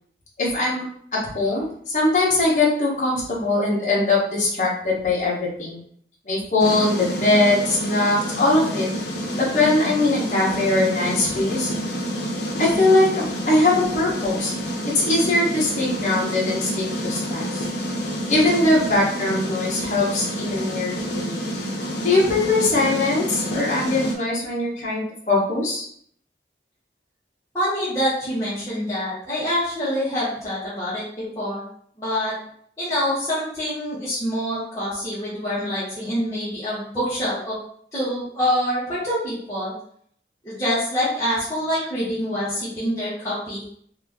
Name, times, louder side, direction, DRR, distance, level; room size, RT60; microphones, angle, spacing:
voice 1, 0.4-0.8 1.2-5.3 5.6-5.8 6.3-8.9 9.4-11.7 12.6-14.5 14.9-17.6 18.3-21.4 22.0-25.8, left 2 dB, 40° left, -6 dB, 1.1 m, -21 dB
sound 1, 6.6-24.1, equal, 70° left, 0.7 m, -28 dB
voice 2, 27.5-31.0 31.4-31.7 32.0-32.3 32.8-37.6 37.9-39.7 40.4-43.6, equal, 15° left, -12 dB, 1.1 m, -25 dB
2.9 x 2.6 x 3.5 m, 0.62 s
head